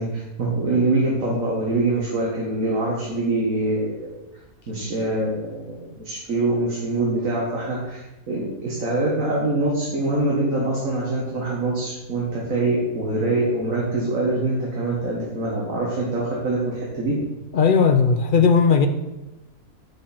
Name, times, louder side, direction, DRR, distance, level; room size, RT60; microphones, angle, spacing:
voice 1, 0.0-4.1 4.7-17.1, right 2 dB, 65° right, -4 dB, 1.9 m, -24 dB
voice 2, 17.5-18.9, left 5 dB, 65° left, 7 dB, 0.5 m, -17 dB
8.0 x 6.7 x 4.3 m, 1.0 s
omnidirectional pair, 1.6 m